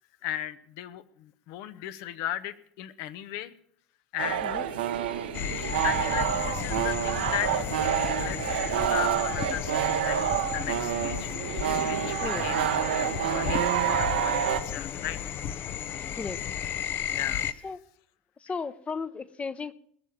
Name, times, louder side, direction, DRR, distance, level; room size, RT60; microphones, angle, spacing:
voice 1, 0.2-3.5 4.1-4.4 5.8-7.5 8.2-8.4 8.7-10.2 10.5-11.3 11.8-12.7 13.2-15.3 17.1-17.7, left 12 dB, 65° left, 13 dB, 1.0 m, -36 dB
sound 1, 4.2-14.6, right 9 dB, 85° right, 1.1 m, -28 dB
sound 2, 5.3-17.5, left 9 dB, 50° left, 0.8 m, -34 dB
voice 2, 12.2-12.5 16.2-16.4 17.6-17.8 18.4-19.7, left 5 dB, 25° left, 14 dB, 0.9 m, -35 dB
20.0 x 7.1 x 7.5 m, 0.64 s
hypercardioid pair, 75°, 5 cm